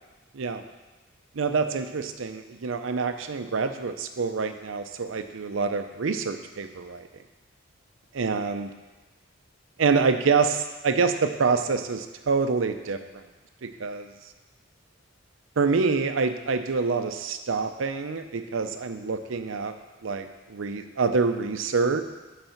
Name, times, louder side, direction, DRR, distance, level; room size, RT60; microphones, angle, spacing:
voice 1, 0.3-0.6 1.3-7.1 8.2-8.7 9.8-13.2 13.6-14.1 15.6-19.7 20.0-22.0, right 4 dB, 80° right, 8 dB, 0.6 m, -26 dB
8.0 x 4.2 x 5.8 m, 1.2 s
head